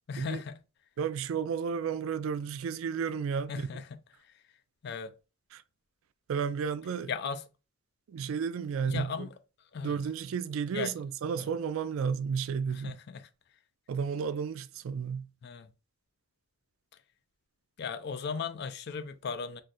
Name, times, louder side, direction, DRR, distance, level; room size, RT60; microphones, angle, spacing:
voice 1, 0.1-0.5 3.5-3.8 4.8-5.1 7.1-7.4 8.9-9.3 9.7-9.9 10.7-10.9 11.3-11.5 12.7-13.2 15.4-15.7 17.8-19.6, left 5 dB, 55° left, 0.4 m, -36 dB
voice 2, 1.0-3.8 5.5-5.6 6.3-7.1 8.1-9.3 9.8-13.0 13.9-15.3, right 6 dB, 75° right, 0.3 m, -32 dB
2.5 x 2.4 x 4.0 m
head